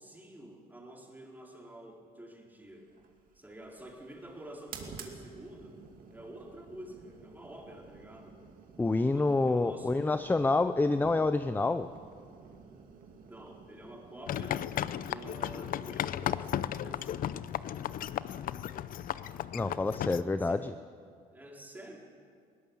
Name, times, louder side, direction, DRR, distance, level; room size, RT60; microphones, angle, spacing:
voice 1, 0.0-2.9 3.3-5.8 6.1-8.4 8.9-10.1 13.3-14.6 15.1-17.5 20.4-20.6 21.3-22.1, right 1 dB, 10° right, -1 dB, 3.9 m, -48 dB
sound 1, 2.9-18.2, right 5 dB, 55° right, 2.5 m, -53 dB
voice 2, 8.8-11.9 19.5-20.7, left 3 dB, 10° left, 12 dB, 0.5 m, -27 dB
sound 2, 14.3-20.2, left 11 dB, 55° left, 0.6 m, -35 dB
21.0 x 17.5 x 7.2 m, 2.1 s
cardioid pair, 110°, 17 cm